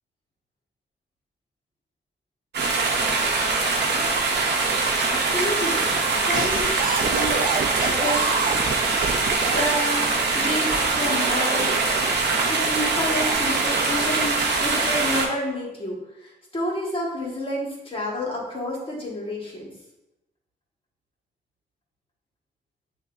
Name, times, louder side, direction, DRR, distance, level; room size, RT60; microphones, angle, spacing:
sound 1, 2.5-15.3, right 3 dB, 80° right, 0.7 m, -23 dB
voice 1, 5.1-5.9 6.2-6.7 7.0-7.4 7.8-8.6 9.5-11.9 12.5-19.7, left 1 dB, 30° left, -4 dB, 1.6 m, -29 dB
sound 2, 6.3-9.7 10.7-12.3 13.0-13.3, right 5 dB, 55° right, 0.4 m, -29 dB
6.6 x 2.7 x 2.6 m, 0.93 s
cardioid pair, 60°, 17 cm